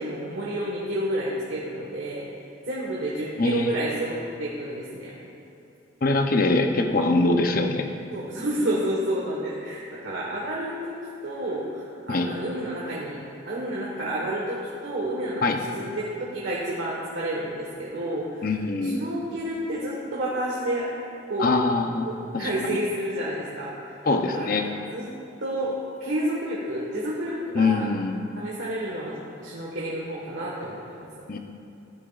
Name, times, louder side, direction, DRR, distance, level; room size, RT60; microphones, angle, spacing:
voice 1, 0.0-2.3 2.6-5.2 6.7-6.9 8.1-11.0 11.2-18.6 18.8-20.9 21.3-21.5 22.0-24.0 24.3-25.1 25.4-27.9 28.4-31.1, right 1 dB, 85° right, -5 dB, 1.4 m, -30 dB
voice 2, 3.4-3.7 6.0-7.9 12.1-12.3 15.4-15.6 18.4-19.0 21.4-22.1 22.3-22.8 24.1-24.6 27.5-28.1 31.3-31.4, left 3 dB, 50° left, 4 dB, 0.7 m, -23 dB
15.0 x 8.9 x 2.5 m, 2.8 s
head